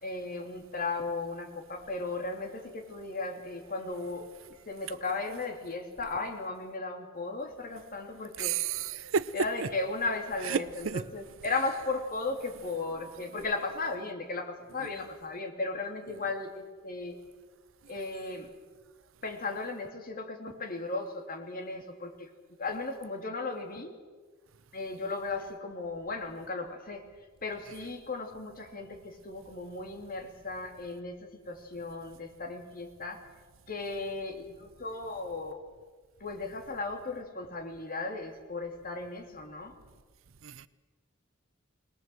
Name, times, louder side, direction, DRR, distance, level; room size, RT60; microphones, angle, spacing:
voice 1, 0.0-4.3 4.7-8.7 9.3-17.2 17.9-18.5 19.2-22.3 22.6-23.9 24.7-27.1 27.4-33.3 33.7-35.6 36.2-39.7, left 3 dB, 45° left, 2.8 m, -36 dB
voice 2, 8.4-9.3 10.5-11.0 40.4-40.6, right 7 dB, 80° right, 0.7 m, -31 dB
21.0 x 20.0 x 7.8 m
head